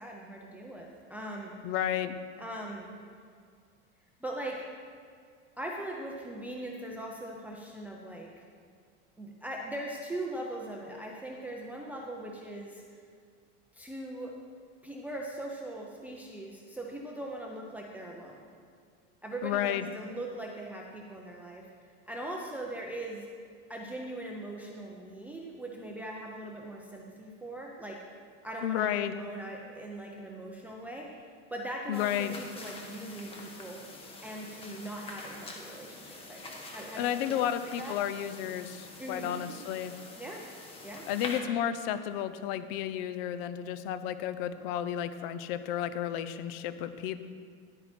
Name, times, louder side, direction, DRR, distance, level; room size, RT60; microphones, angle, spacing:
voice 1, 0.0-1.6 2.4-3.0 4.2-4.6 5.6-8.3 9.2-13.0 13.7-14.3 14.8-18.4 19.2-21.6 22.1-23.3 23.7-28.0 28.4-31.1 31.5-33.8 34.2-37.9 39.0-39.3 40.2-40.4 40.8-41.1, right 1 dB, 5° right, -2 dB, 0.4 m, -40 dB
voice 2, 1.6-2.2 19.4-19.9 28.6-29.2 31.9-32.5 37.0-39.9 41.1-47.3, left 10 dB, 60° left, 12 dB, 0.7 m, -32 dB
sound 1, 31.9-41.4, left 2 dB, 15° left, 1.0 m, -46 dB
11.0 x 8.7 x 4.3 m, 2.2 s
cardioid pair, 170°, 33 cm